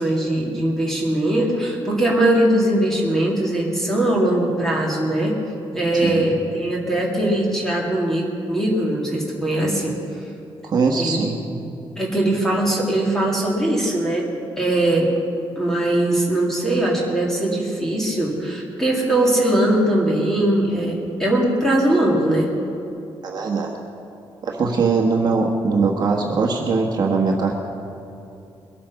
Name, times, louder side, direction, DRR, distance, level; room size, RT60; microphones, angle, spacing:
voice 1, 0.0-5.3 5.7-10.0 11.0-11.2 12.0-14.3 14.6-15.1 15.6-22.5, right 1 dB, 5° left, -3 dB, 2.3 m, -20 dB
voice 2, 10.6-11.4 23.2-23.7 24.4-27.5, right 4 dB, 45° right, 0 dB, 1.3 m, -21 dB
22.0 x 8.5 x 5.8 m, 2.7 s
wide cardioid pair, 175°, 10 cm